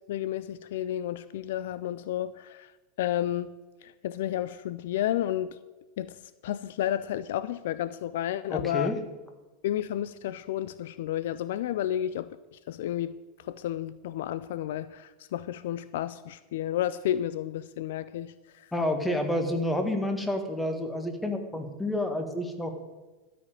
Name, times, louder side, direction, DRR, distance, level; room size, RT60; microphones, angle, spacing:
voice 1, 0.1-2.7 3.0-3.5 3.8-5.5 6.0-6.2 6.4-9.0 9.6-13.1 13.5-18.7, left 12 dB, 65° left, 16 dB, 0.4 m, -31 dB
voice 2, 8.5-9.0 18.7-22.7, left 1 dB, 5° left, 5 dB, 1.8 m, -29 dB
13.0 x 5.1 x 8.9 m, 1.2 s
figure-of-eight pair, 85°, 0 cm